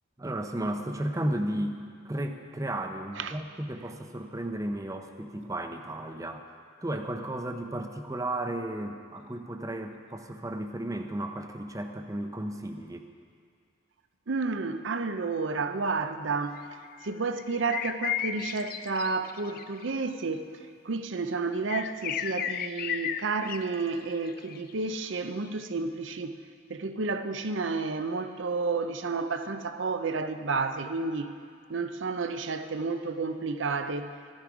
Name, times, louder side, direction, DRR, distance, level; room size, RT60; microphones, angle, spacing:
voice 1, 0.2-6.5 6.8-13.1, right 1 dB, 15° right, 0.7 m, -34 dB
voice 2, 14.3-16.6 17.0-20.5 20.8-26.4 26.7-31.4 31.7-34.1, right 4 dB, 65° right, 0.6 m, -31 dB
sound 1, 16.5-20.0 21.7-23.6 24.0-25.2, left 9 dB, 50° left, 0.4 m, -34 dB
14.0 x 10.5 x 4.8 m
head